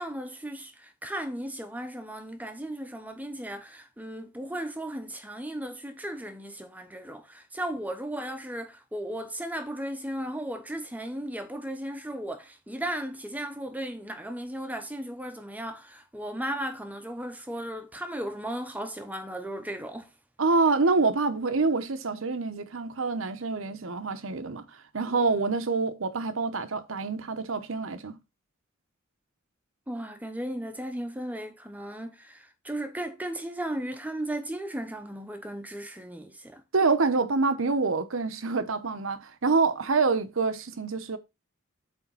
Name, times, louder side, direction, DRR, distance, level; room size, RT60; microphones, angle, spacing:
voice 1, 0.0-20.1 29.9-36.6, right 1 dB, 10° right, 0.8 m, -36 dB
voice 2, 20.4-24.7 24.9-28.2 36.7-41.2, right 4 dB, 70° right, 0.9 m, -26 dB
8.3 x 3.5 x 5.5 m
head